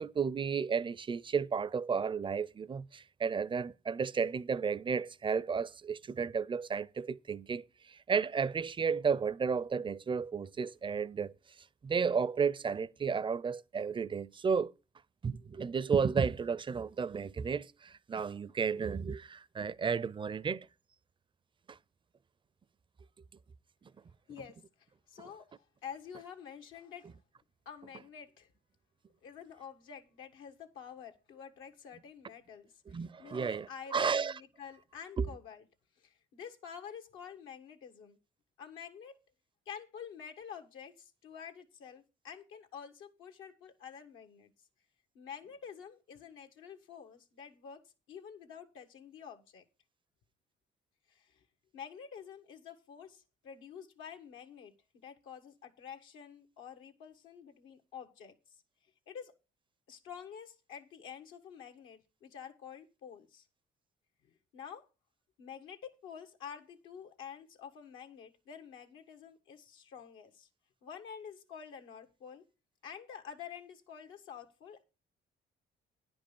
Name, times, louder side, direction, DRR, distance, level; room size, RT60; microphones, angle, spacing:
voice 1, 0.0-11.3 11.8-14.7 15.2-20.7 21.7-21.8 25.2-25.3 32.9-34.4 35.2-35.3, right 6 dB, 25° right, 0.4 m, -33 dB
voice 2, 25.1-27.1 27.6-28.5 29.2-35.6 36.0-38.2 38.6-39.1 39.7-44.5 45.1-47.8 48.1-49.6 51.1-51.3 51.7-58.3 59.1-59.3 59.9-63.4 64.5-64.8 65.4-70.5 70.8-72.4 72.8-74.8, left 7 dB, 90° left, 1.4 m, -48 dB
10.0 x 5.3 x 6.9 m
cardioid pair, 90°, 20 cm